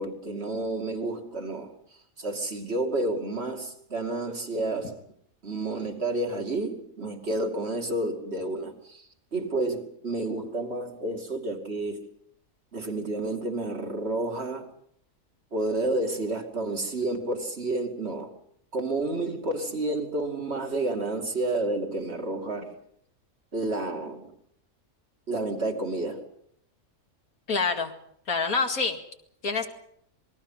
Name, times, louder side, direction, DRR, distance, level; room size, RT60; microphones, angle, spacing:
voice 1, 0.0-5.0 5.4-12.1 12.7-14.7 15.5-18.3 18.7-22.8 23.5-24.3 25.3-26.3, right 2 dB, 45° right, 2.9 m, -30 dB
voice 2, 27.5-27.9 28.3-29.0 29.4-29.7, left 4 dB, 85° left, 2.6 m, -26 dB
27.0 x 21.0 x 5.7 m
omnidirectional pair, 1.5 m